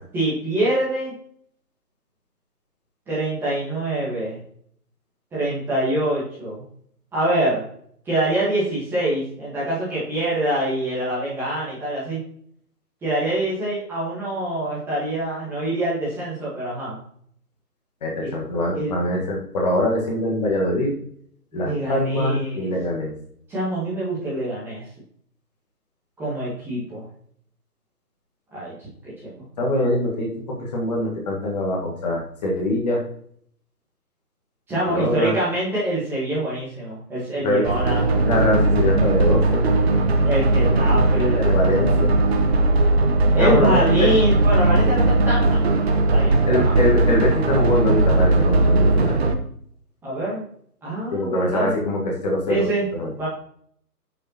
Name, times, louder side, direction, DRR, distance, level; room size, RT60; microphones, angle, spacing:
voice 1, 0.1-1.1 3.1-4.4 5.3-6.6 7.1-7.6 8.0-12.2 13.0-17.0 18.2-18.3 18.7-18.9 21.5-22.7 23.5-24.8 26.2-27.0 28.5-28.7 29.0-29.4 34.7-38.1 40.2-42.0 43.3-45.6 46.1-46.7 50.0-50.4 50.8-51.7 52.5-52.9 53.2-53.3, right 1 dB, 5° right, -9 dB, 1.5 m, -25 dB
voice 2, 18.0-20.9 21.5-23.1 29.6-33.0 34.9-35.3 37.4-37.6 38.2-39.6 40.6-40.7 41.4-42.2 43.4-44.1 46.5-49.1 51.1-52.6 52.9-53.1, left 1 dB, 25° left, -1 dB, 1.6 m, -23 dB
sound 1, 37.6-49.3, right 2 dB, 40° right, 1.1 m, -18 dB
9.7 x 6.7 x 2.9 m, 0.64 s
figure-of-eight pair, 155°, 47 cm